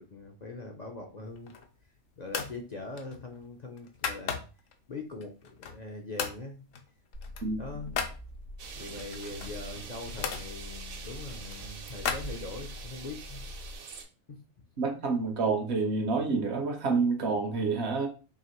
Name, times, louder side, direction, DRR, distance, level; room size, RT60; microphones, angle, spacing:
voice 1, 0.0-1.5 2.2-4.4 4.9-6.6 7.6-7.9 8.7-13.5 14.3-14.4, left 3 dB, 55° left, 0.5 m, -42 dB
sound 1, 1.3-1.8 2.3-2.6 3.0-4.7 5.2-5.9 6.2-6.4 6.7-8.2 9.0-10.5 11.0-12.9, left 6 dB, 75° left, 1.0 m, -37 dB
Car / Engine, 7.1-13.8, left 1 dB, 90° left, 2.2 m, -44 dB
sound 2, 8.6-14.0, right 5 dB, 80° right, 1.1 m, -45 dB
voice 2, 14.8-18.1, right 4 dB, 60° right, 0.8 m, -28 dB
4.8 x 2.8 x 3.0 m
omnidirectional pair, 1.4 m